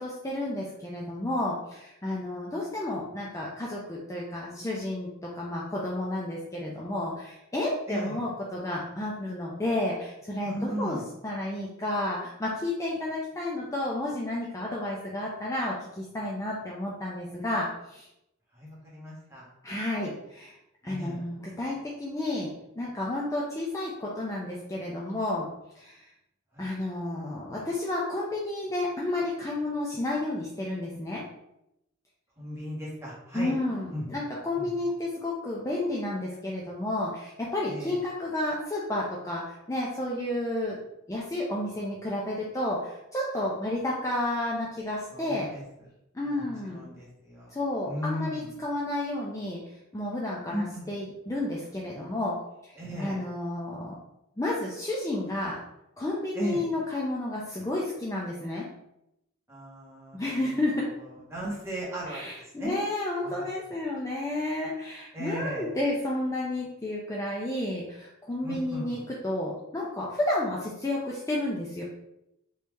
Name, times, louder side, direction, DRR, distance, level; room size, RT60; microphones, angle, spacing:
voice 1, 0.0-18.1 19.6-20.5 20.8-22.5 22.8-25.5 25.7-26.0 26.6-31.2 33.3-40.8 41.1-45.5 46.1-46.8 47.5-49.6 49.9-52.4 52.6-52.7 53.0-53.9 54.4-55.6 56.0-58.7 60.1-60.9 62.1-71.8, left 1 dB, 15° left, -4 dB, 0.5 m, -31 dB
voice 2, 7.9-8.2 10.4-11.0 18.5-19.4 20.8-21.2 26.5-26.7 32.4-33.6 33.9-34.0 34.6-34.7 37.7-37.9 45.1-45.6 46.2-46.4 46.7-47.5 47.8-48.5 50.5-50.9 52.8-53.2 56.3-56.6 59.5-60.4 61.3-62.2 62.6-62.8 63.2-63.5 65.1-65.7 68.4-69.0, equal, 15° right, -6 dB, 1.2 m, -36 dB
3.1 x 2.7 x 3.4 m, 0.84 s
head